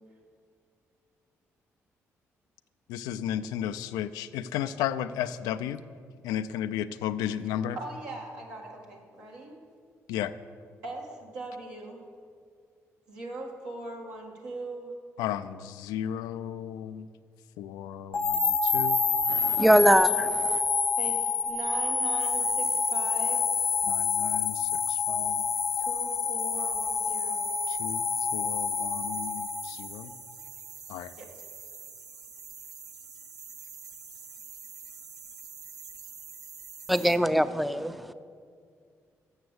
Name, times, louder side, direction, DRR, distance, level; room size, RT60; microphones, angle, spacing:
voice 1, 2.9-5.8 6.2-7.8 10.1-10.3 15.2-17.1 17.6-19.0 23.9-25.4 27.7-30.1 30.9-31.1, left 10 dB, 90° left, 0.3 m, -34 dB
voice 2, 7.7-9.6 10.8-12.0 13.1-14.9 19.3-20.1 21.0-23.5 25.8-27.5 31.2-31.3, right 2 dB, 90° right, 1.7 m, -40 dB
sound 1, 18.1-30.3, left 5 dB, 35° left, 0.7 m, -28 dB
voice 3, 19.3-20.3 36.9-38.1, equal, ahead, 0.4 m, -22 dB
Microondas interior, 22.2-37.2, right 6 dB, 65° right, 0.8 m, -46 dB
7.2 x 6.8 x 7.9 m
supercardioid pair, 55°, 6 cm